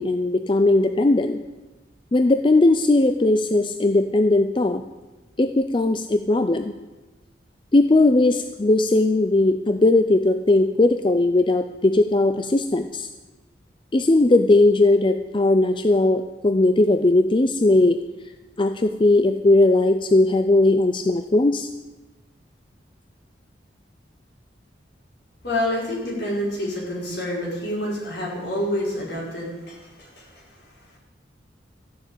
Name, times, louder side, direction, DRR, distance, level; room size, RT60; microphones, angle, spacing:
voice 1, 0.0-1.4 2.1-4.8 5.4-6.7 7.7-13.1 13.9-18.0 18.6-21.7, left 2 dB, 25° left, 8 dB, 0.4 m, -18 dB
voice 2, 25.4-30.6, left 1 dB, 65° left, -4 dB, 5.2 m, -28 dB
14.0 x 6.7 x 8.9 m, 1.2 s
head